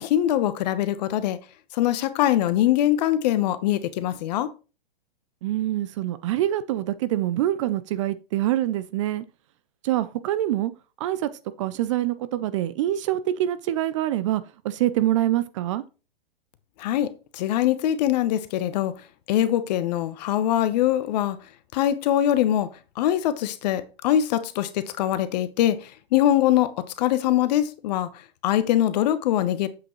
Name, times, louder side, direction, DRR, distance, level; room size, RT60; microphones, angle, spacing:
voice 1, 0.0-1.4 1.7-4.5 16.8-18.9 19.3-21.4 21.7-22.7 23.0-28.1 28.4-29.7, left 12 dB, 45° left, 0.9 m, -23 dB
voice 2, 5.4-9.2 9.8-10.7 11.0-11.3 11.6-15.8, right 13 dB, 35° right, 0.4 m, -25 dB
7.7 x 6.0 x 3.0 m
hypercardioid pair, 125°, 29 cm